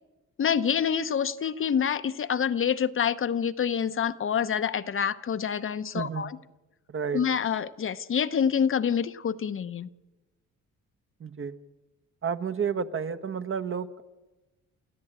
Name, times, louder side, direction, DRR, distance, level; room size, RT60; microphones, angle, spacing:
voice 1, 0.4-6.4 7.1-9.9, left 7 dB, 45° left, 12 dB, 0.8 m, -27 dB
voice 2, 5.9-6.2 6.9-7.2 11.2-11.6 12.2-14.0, right 6 dB, 45° right, 10 dB, 1.3 m, -31 dB
29.0 x 13.5 x 8.8 m, 1.1 s
cardioid pair, 90°, 30 cm